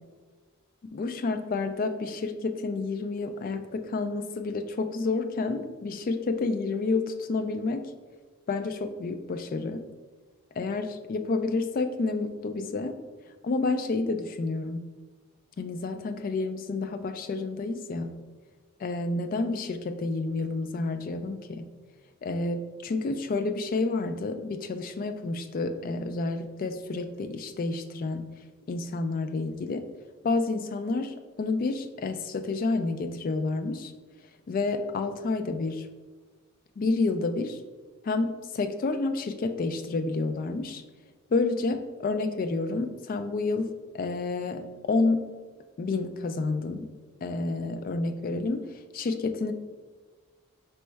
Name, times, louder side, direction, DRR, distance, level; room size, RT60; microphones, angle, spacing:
voice 1, 0.9-7.9 8.5-9.8 10.6-13.0 13.4-14.8 15.6-18.1 18.8-21.6 22.2-28.2 28.7-29.9 30.2-33.9 34.5-35.9 36.8-37.6 38.0-40.8 41.3-45.2 45.8-46.9 47.2-49.5, left 3 dB, 40° left, 8 dB, 0.3 m, -29 dB
4.4 x 3.1 x 3.3 m, 1.4 s
head